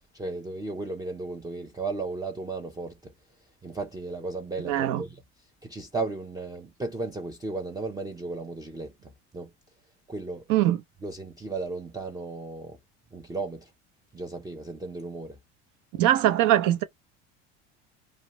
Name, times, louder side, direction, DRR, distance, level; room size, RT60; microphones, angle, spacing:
voice 1, 0.1-3.1 3.6-5.2 5.6-9.5 10.1-10.5 11.0-12.8 13.1-13.7 14.1-15.4, right 3 dB, 10° right, 0.5 m, -35 dB
voice 2, 4.7-5.0 10.5-10.8 15.9-16.8, right 13 dB, 65° right, 0.7 m, -22 dB
2.5 x 2.1 x 2.9 m
supercardioid pair, 90°, 32 cm